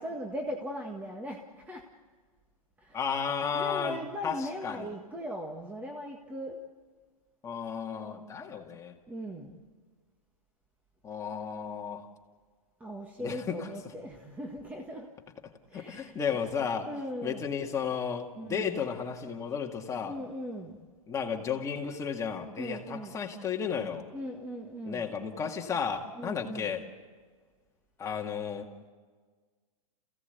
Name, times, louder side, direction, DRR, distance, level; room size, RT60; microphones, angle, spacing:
voice 1, 0.0-1.9 2.8-3.0 3.5-6.6 9.1-9.7 12.8-15.1 15.7-16.2 16.9-17.6 18.3-18.8 20.0-20.8 22.6-23.2 24.1-25.1 26.2-26.7, equal, 10° right, 2 dB, 1.6 m, -39 dB
voice 2, 2.9-4.9 7.4-9.0 11.0-12.1 13.2-13.7 15.7-16.9 17.2-20.1 21.1-24.1 24.9-26.8 28.0-28.9, left 6 dB, 15° left, 2 dB, 2.1 m, -33 dB
28.0 x 16.5 x 8.2 m, 1.5 s
hypercardioid pair, 135°, 18 cm